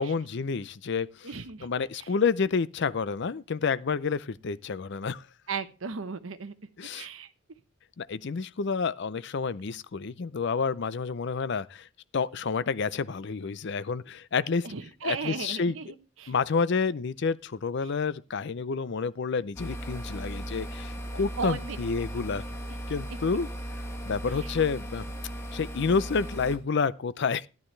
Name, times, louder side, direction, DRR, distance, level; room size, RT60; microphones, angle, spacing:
voice 1, 0.0-1.3 1.6-5.2 6.8-7.1 8.0-11.9 12.1-14.7 15.0-15.7 16.3-22.4 22.9-23.5 24.1-25.0 25.5-27.5, left 5 dB, 55° left, 0.5 m, -29 dB
voice 2, 1.2-1.7 1.9-2.1 5.5-6.5 6.9-7.3 14.6-16.3 17.8-17.9 21.4-21.8 23.1-23.2 24.4-24.6, right 5 dB, 70° right, 0.9 m, -36 dB
sound 1, 19.6-26.6, right 1 dB, 15° left, 1.4 m, -37 dB
12.5 x 11.0 x 3.2 m
head